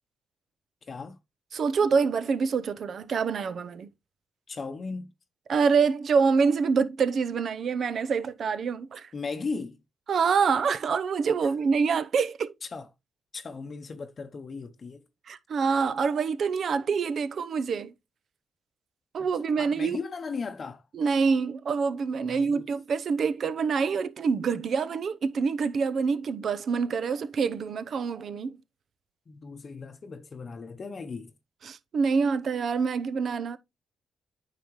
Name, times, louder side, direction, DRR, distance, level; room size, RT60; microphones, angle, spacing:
voice 1, 0.9-1.2 4.5-5.1 9.1-9.8 12.6-12.9 13.3-15.0 19.2-19.3 19.6-20.8 22.3-22.7 29.3-31.3, left 4 dB, 40° left, 0.8 m, -37 dB
voice 2, 1.5-3.9 5.5-9.1 10.1-12.5 15.3-17.9 19.1-20.0 20.9-28.6 31.6-33.6, right 5 dB, 55° right, 0.7 m, -26 dB
9.3 x 5.7 x 3.1 m
cardioid pair, 95°, 0 cm